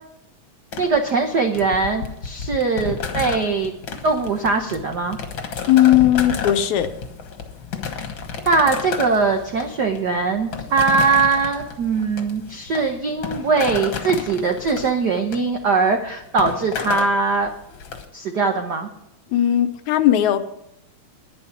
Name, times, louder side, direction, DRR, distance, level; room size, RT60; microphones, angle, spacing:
sound 1, 0.7-18.0, left 6 dB, 50° left, 1.8 m, -32 dB
voice 1, 0.8-3.7 4.0-5.2 8.4-17.5 18.1-18.9, right 4 dB, 75° right, 4 dB, 0.9 m, -21 dB
voice 2, 5.7-6.9 19.3-20.4, left 12 dB, 85° left, 9 dB, 2.3 m, -17 dB
10.5 x 10.0 x 5.9 m, 0.80 s
omnidirectional pair, 3.4 m